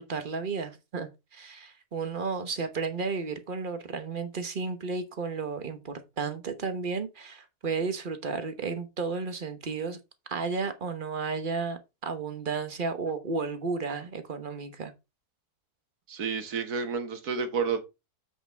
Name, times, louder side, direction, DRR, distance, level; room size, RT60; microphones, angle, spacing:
voice 1, 0.0-10.0 10.3-14.9, right 4 dB, 35° right, 1.1 m, -33 dB
voice 2, 16.1-17.8, right 5 dB, 70° right, 1.9 m, -30 dB
7.7 x 6.9 x 3.4 m
omnidirectional pair, 1.7 m